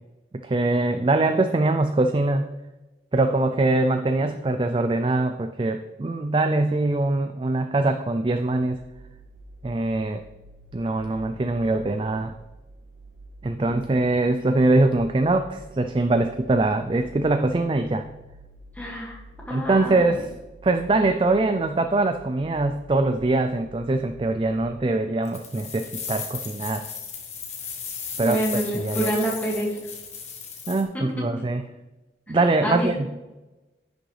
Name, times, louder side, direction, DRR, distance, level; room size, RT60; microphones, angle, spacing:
voice 1, 0.4-2.5 3.1-8.8 9.6-10.2 10.7-12.4 13.4-18.0 19.5-20.3 20.6-26.9 28.2-28.4 28.7-29.1 30.7-31.6 32.3-33.2, right 2 dB, 30° right, 8 dB, 0.3 m, -23 dB
sound 1, 8.7-24.6, right 2 dB, 75° right, 0.7 m, -48 dB
voice 2, 18.8-19.2 19.5-20.1 28.2-29.8 30.9-31.0 32.6-32.9, right 1 dB, 10° left, -3 dB, 2.0 m, -27 dB
sound 2, 25.2-30.8, left 6 dB, 40° left, 1.2 m, -35 dB
10.5 x 6.3 x 3.3 m, 1.1 s
head